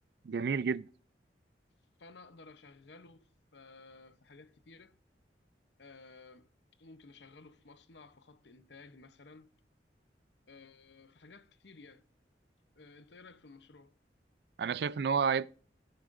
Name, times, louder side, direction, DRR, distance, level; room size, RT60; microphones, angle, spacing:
voice 1, 0.2-0.9 14.6-15.5, right 6 dB, 65° right, 0.3 m, -30 dB
voice 2, 2.0-5.0 5.8-6.5 6.8-9.5 10.5-12.1 12.8-14.0, left 3 dB, 75° left, 0.8 m, -55 dB
14.5 x 9.8 x 2.6 m
head